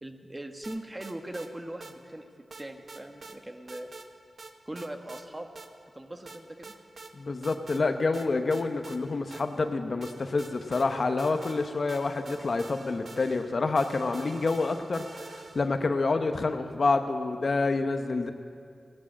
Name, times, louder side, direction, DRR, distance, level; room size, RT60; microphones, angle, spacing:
voice 1, 0.0-2.3 2.6-3.9 4.7-5.5 5.9-6.8, right 1 dB, 25° right, 5 dB, 1.4 m, -40 dB
sound 1, 0.6-1.5 1.8-1.9 2.5-3.4 3.7-4.1 4.4-5.2 5.6-5.7 6.3-7.1 7.4-7.8 8.1-9.7 10.0-15.8, right 3 dB, 60° right, 1.0 m, -47 dB
voice 2, 7.1-15.1 15.3-18.3, left 3 dB, 60° left, 7 dB, 0.9 m, -28 dB
17.0 x 11.5 x 7.6 m, 2.3 s
cardioid pair, 60°, 0 cm